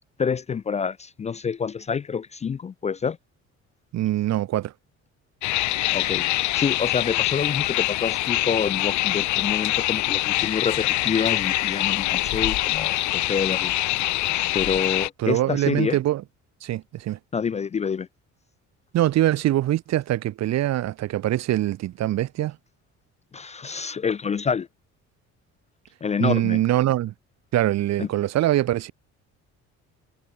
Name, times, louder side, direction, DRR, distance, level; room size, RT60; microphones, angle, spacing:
voice 1, 0.2-3.2 5.9-6.3 6.5-13.7 14.5-16.0 17.3-18.1 23.3-24.7 26.0-26.6 28.0-28.1, left 6 dB, 25° left, 0.5 m, -27 dB
voice 2, 3.9-4.7 15.2-16.2 16.6-17.2 18.9-22.6 26.2-27.1 27.5-28.9, right 14 dB, 65° right, 2.9 m, -23 dB
sound 1, 5.4-15.1, left 17 dB, 80° left, 1.7 m, -24 dB
cardioid pair, 145°, 29 cm